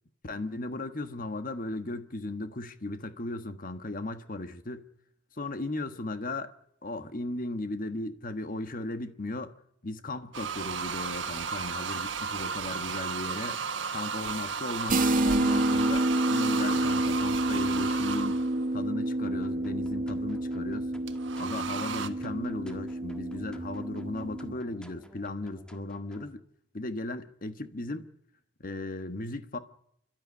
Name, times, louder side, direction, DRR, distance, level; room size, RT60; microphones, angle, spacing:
voice 1, 0.2-4.9 5.4-6.5 6.8-9.5 9.8-13.6 13.9-18.4 18.7-20.9 21.4-26.4 26.7-28.1 28.6-29.6, left 2 dB, 50° left, 1.4 m, -36 dB
sound 1, 10.3-18.7 21.1-22.1, right 6 dB, 75° right, 1.4 m, -34 dB
sound 2, 14.9-24.5, right 1 dB, 45° right, 1.1 m, -29 dB
sound 3, 19.2-26.3, equal, 5° left, 1.7 m, -52 dB
28.5 x 12.5 x 9.7 m
head